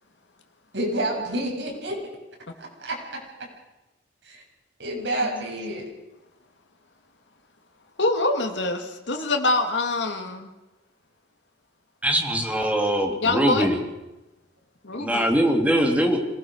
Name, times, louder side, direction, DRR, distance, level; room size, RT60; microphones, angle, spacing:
voice 1, 0.7-2.0 2.6-3.2 4.2-4.4 4.8-5.9, right 1 dB, 85° right, -1 dB, 7.3 m, -29 dB
voice 2, 8.0-10.5 13.1-13.7 14.8-15.3, left 2 dB, 85° left, 4 dB, 2.4 m, -25 dB
voice 3, 12.0-13.8 15.0-16.2, equal, 10° right, 3 dB, 3.3 m, -22 dB
26.5 x 18.5 x 6.5 m, 1.0 s
head